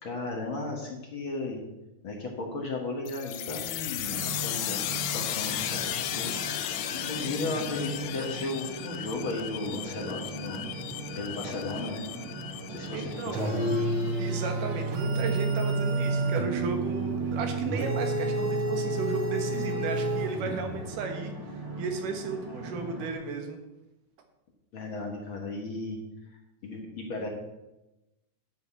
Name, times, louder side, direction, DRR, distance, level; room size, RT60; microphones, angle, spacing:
voice 1, 0.0-1.6 2.0-5.8 6.1-6.4 6.9-10.7 11.1-12.0 12.7-13.7 24.7-26.0 26.6-27.3, left 2 dB, 50° left, 0 dB, 1.8 m, -35 dB
sound 1, 3.1-14.5, left 11 dB, 80° left, 2.1 m, -35 dB
sound 2, 4.0-23.1, right 2 dB, 20° right, 0.6 m, -40 dB
voice 2, 12.9-13.5 14.2-21.3 21.8-23.6, right 4 dB, 85° right, 4 dB, 2.9 m, -34 dB
sound 3, 13.3-20.8, right 2 dB, 55° right, 1.9 m, -29 dB
10.0 x 5.2 x 7.9 m, 0.97 s
omnidirectional pair, 3.6 m